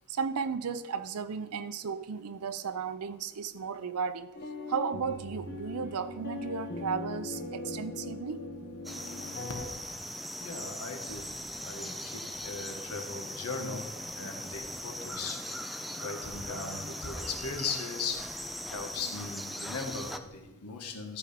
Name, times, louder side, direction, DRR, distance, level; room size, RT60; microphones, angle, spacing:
voice 1, 0.1-4.3 4.7-8.4, right 6 dB, 80° right, 13 dB, 0.5 m, -34 dB
sound 1, 4.3-9.6, left 3 dB, 45° left, 1.0 m, -40 dB
sound 2, 8.8-20.2, equal, ahead, 0.3 m, -40 dB
voice 2, 10.4-11.3 11.6-13.8 14.1-15.4 16.0-18.2 18.7-21.2, left 4 dB, 90° left, 3 dB, 1.6 m, -38 dB
13.0 x 5.0 x 5.1 m, 1.1 s
head